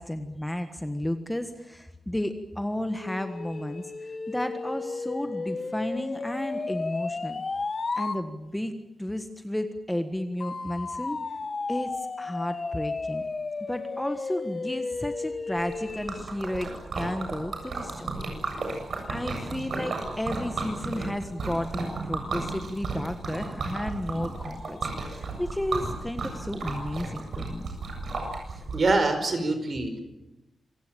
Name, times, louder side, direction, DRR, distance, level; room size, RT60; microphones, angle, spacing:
voice 1, 0.0-7.4 7.9-11.2 11.7-13.2 13.7-18.2 19.1-27.7, left 1 dB, 5° left, 7 dB, 1.5 m, -33 dB
sound 1, 3.0-8.2 10.4-16.3, left 3 dB, 35° left, 1.7 m, -33 dB
Liquid, 15.6-28.7, right 3 dB, 65° right, 7.6 m, -34 dB
voice 2, 28.7-30.0, right 3 dB, 40° right, 8 dB, 5.0 m, -24 dB
27.5 x 18.0 x 9.1 m, 0.95 s
wide cardioid pair, 120°, 0 cm